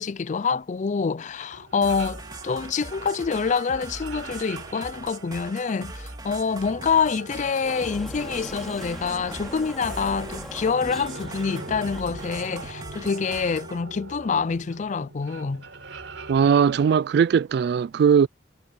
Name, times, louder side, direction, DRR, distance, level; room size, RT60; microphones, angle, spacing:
voice 1, 0.0-15.6, left 5 dB, 40° left, 0.4 m, -26 dB
sound 1, 1.5-17.0, right 3 dB, 85° right, 4.7 m, -42 dB
sound 2, 1.8-13.8, right 2 dB, 20° right, 3.4 m, -40 dB
sound 3, 7.6-13.1, equal, ahead, 2.9 m, -41 dB
voice 2, 16.3-18.3, right 7 dB, 60° right, 0.3 m, -19 dB
head